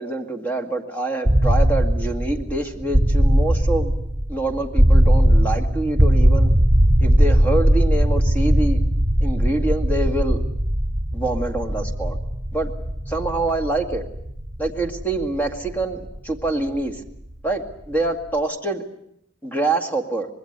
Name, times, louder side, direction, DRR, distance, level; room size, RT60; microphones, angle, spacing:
voice 1, 0.0-3.9 4.3-6.5 7.0-8.8 9.2-10.4 11.1-12.2 12.5-12.7 13.1-14.0 14.6-17.0 17.4-18.8 19.4-20.3, right 2 dB, 10° left, 4 dB, 2.1 m, -25 dB
sound 1, 1.2-17.1, equal, 25° right, 4.4 m, -19 dB
25.0 x 20.5 x 8.1 m, 0.74 s
head